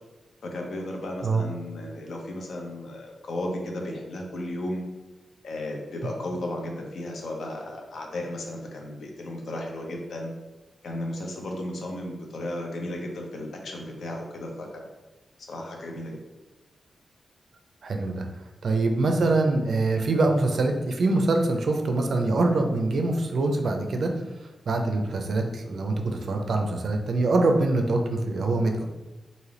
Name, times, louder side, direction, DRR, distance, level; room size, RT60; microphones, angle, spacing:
voice 1, 0.4-4.8 5.4-10.3 10.8-14.9 15.5-16.2, left 1 dB, 65° left, 1 dB, 0.7 m, -34 dB
voice 2, 17.8-18.2 18.6-24.2 24.7-28.8, right 2 dB, 55° right, 4 dB, 0.4 m, -24 dB
3.8 x 2.6 x 3.2 m, 1.1 s
wide cardioid pair, 170°, 0 cm